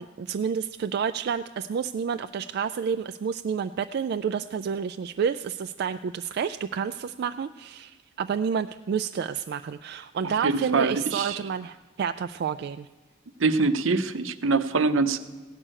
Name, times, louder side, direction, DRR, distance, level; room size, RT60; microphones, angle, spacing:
voice 1, 0.0-12.9, right 7 dB, 55° right, 9 dB, 0.3 m, -29 dB
voice 2, 10.4-11.4 13.4-15.2, right 3 dB, 75° right, 11 dB, 0.7 m, -24 dB
16.0 x 6.4 x 8.8 m, 1.3 s
head